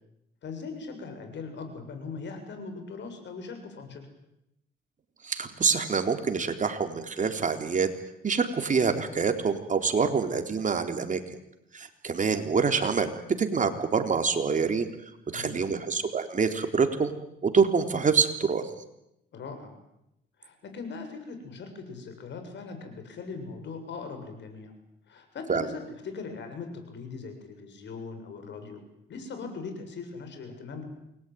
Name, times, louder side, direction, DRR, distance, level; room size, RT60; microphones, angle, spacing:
voice 1, 0.4-4.1 15.3-15.6 19.3-19.8 20.4-24.7 25.1-28.8 29.1-30.8, left 4 dB, 65° left, 7 dB, 7.4 m, -40 dB
voice 2, 5.2-7.9 8.2-11.2 11.7-14.9 15.3-17.1 17.4-18.7 25.5-25.7, right 5 dB, 40° right, 6 dB, 3.7 m, -26 dB
28.5 x 22.0 x 9.4 m, 0.84 s
cardioid pair, 90°, 20 cm